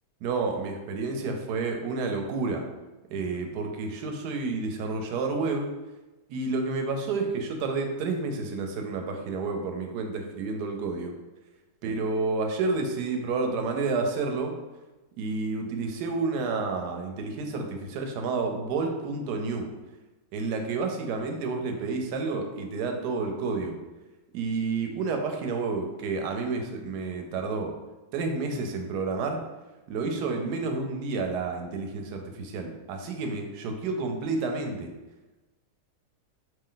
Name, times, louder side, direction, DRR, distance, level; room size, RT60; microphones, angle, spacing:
voice 1, 0.2-2.7 3.1-5.7 6.3-11.1 11.8-14.5 15.2-19.7 20.3-23.8 24.3-27.7 28.1-29.4 29.9-34.9, right 4 dB, 75° right, 3 dB, 1.1 m, -30 dB
3.3 x 2.7 x 3.8 m, 1.1 s
omnidirectional pair, 1.8 m